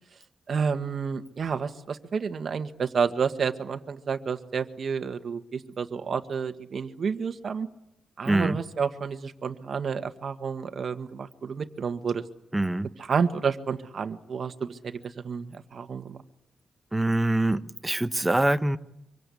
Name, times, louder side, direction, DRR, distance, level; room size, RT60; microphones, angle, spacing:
voice 1, 0.5-7.7 8.2-12.2 13.0-16.2, right 6 dB, 45° right, 1.6 m, -30 dB
voice 2, 8.3-8.6 12.5-12.9 16.9-18.8, right 1 dB, 10° right, 1.0 m, -24 dB
25.0 x 24.5 x 8.5 m
wide cardioid pair, 140°, 0 cm